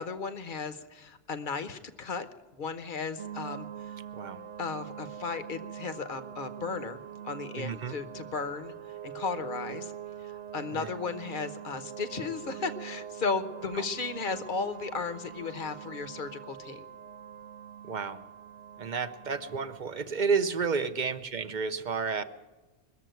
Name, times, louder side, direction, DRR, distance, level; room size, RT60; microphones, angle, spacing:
voice 1, 0.0-2.3 2.6-4.0 4.6-8.7 9.0-9.9 10.2-16.8, left 4 dB, 50° left, 11 dB, 1.0 m, -35 dB
sound 1, 3.2-19.8, right 9 dB, 80° right, 1.1 m, -43 dB
voice 2, 7.6-7.9 10.7-10.9 13.7-13.9 17.8-18.2 18.8-22.2, right 5 dB, 45° right, 10 dB, 0.7 m, -31 dB
21.0 x 7.3 x 9.2 m, 1.2 s
omnidirectional pair, 1.2 m